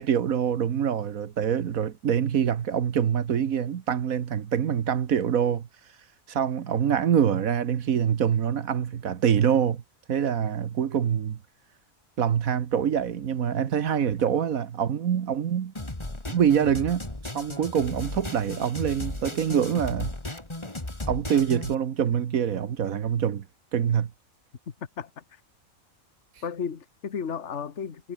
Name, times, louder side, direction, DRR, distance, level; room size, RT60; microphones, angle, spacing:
voice 1, 0.0-5.7 6.3-9.8 10.1-11.4 12.2-15.7 16.3-20.1 21.1-23.4 23.7-24.1, right 8 dB, 75° right, 1.5 m, -25 dB
sound 1, 15.8-21.8, left 2 dB, 20° left, 2.5 m, -35 dB
voice 2, 25.0-25.4 26.4-28.1, left 6 dB, 55° left, 1.7 m, -34 dB
omnidirectional pair, 1.5 m